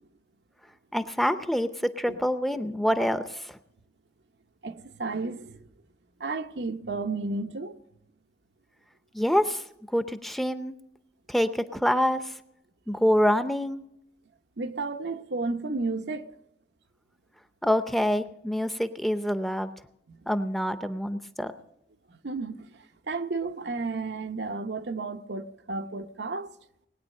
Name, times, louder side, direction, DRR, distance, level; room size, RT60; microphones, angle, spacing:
voice 1, 0.9-1.7 2.0-3.6 9.1-9.6 9.9-10.7 11.3-12.3 12.9-13.8 17.6-19.7 20.3-21.5, equal, ahead, 0.6 m, -26 dB
voice 2, 4.6-5.6 6.2-7.8 14.6-16.3 20.1-20.2 22.2-22.7 23.1-26.5, right 3 dB, 80° right, 0.9 m, -32 dB
20.0 x 9.3 x 6.5 m
head